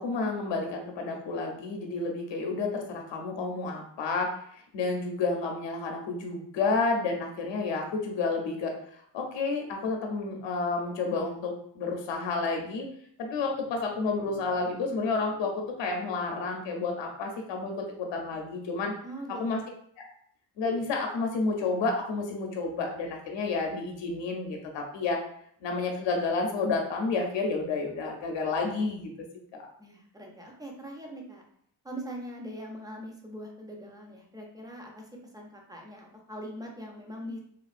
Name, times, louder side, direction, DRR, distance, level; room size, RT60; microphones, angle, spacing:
voice 1, 0.0-8.8 9.1-12.9 13.2-18.9 19.3-19.6 20.0-20.1 20.6-25.2 25.6-29.1 29.5-29.7, left 3 dB, 85° left, 2 dB, 0.6 m, -30 dB
voice 2, 19.0-19.7 29.8-31.4 31.8-35.0 35.3-37.4, equal, 10° right, 0 dB, 0.4 m, -42 dB
3.0 x 2.4 x 2.4 m, 0.65 s
wide cardioid pair, 140°, 43 cm